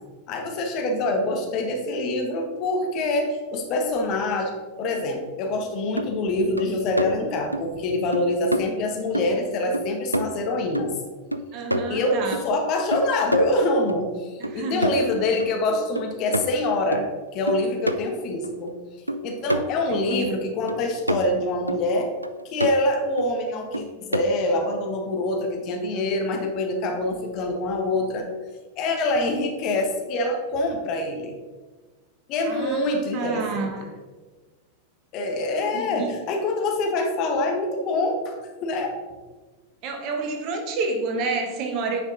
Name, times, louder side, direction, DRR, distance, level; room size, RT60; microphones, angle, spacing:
voice 1, 0.3-10.9 11.9-18.7 19.2-22.1 22.4-28.3 28.8-31.4 32.3-33.9 35.1-38.3 38.6-39.0, left 2 dB, 40° left, 2 dB, 1.4 m, -25 dB
sound 1, 5.5-5.6 6.0-6.1 6.6-7.1 7.5-7.7 8.1-8.3 8.5-8.7 9.1-9.4 9.7-10.5 10.7-12.4 12.9-14.0 14.4-15.1 15.4-15.5 16.0-17.0 17.5-18.0 18.4-18.5 19.1-20.2 20.7-21.4 21.7-21.8 22.2-22.8 23.2-23.3 23.7-24.5, right 1 dB, 85° right, 0.4 m, -28 dB
voice 2, 11.5-12.4 14.4-14.9 19.9-20.4 32.4-33.8 35.7-36.1 39.8-42.0, right 4 dB, 40° right, 3 dB, 1.3 m, -29 dB
9.3 x 5.2 x 3.8 m, 1.3 s
figure-of-eight pair, 90°, 0 cm